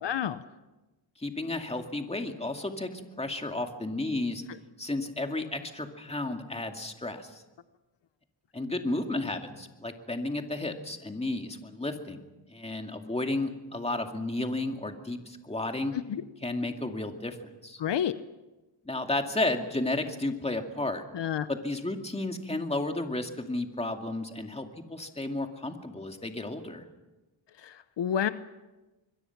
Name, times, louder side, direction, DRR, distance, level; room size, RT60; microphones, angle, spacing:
voice 1, 0.0-0.4 16.1-16.2 17.8-18.1 21.1-21.5 27.6-28.3, left 9 dB, 65° left, 12 dB, 0.9 m, -29 dB
voice 2, 1.2-4.4 4.8-7.4 8.5-12.2 12.5-16.0 16.4-17.4 17.6-17.8 18.9-21.0 21.5-26.8, left 2 dB, 15° left, 4 dB, 2.3 m, -32 dB
26.5 x 22.5 x 6.0 m, 1.1 s
wide cardioid pair, 115°, 45 cm